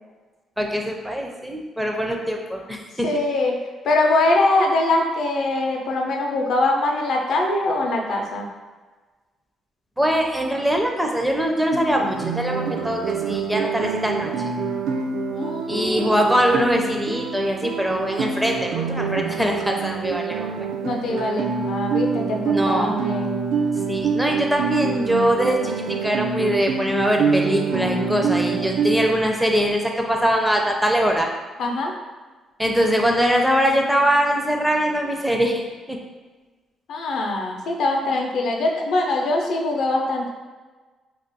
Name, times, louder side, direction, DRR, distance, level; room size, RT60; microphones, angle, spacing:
voice 1, 0.6-3.2 10.0-14.3 15.7-20.5 22.5-23.0 23.9-31.3 32.6-36.0, equal, 5° right, 1 dB, 0.4 m, -22 dB
voice 2, 3.0-3.6 3.8-8.5 15.3-16.3 20.8-23.3 31.6-31.9 36.9-40.3, left 2 dB, 75° left, 1 dB, 0.5 m, -23 dB
Guitar, 11.7-29.1, right 5 dB, 85° right, 0.3 m, -26 dB
2.4 x 2.1 x 3.9 m, 1.3 s
cardioid pair, 90°, 0 cm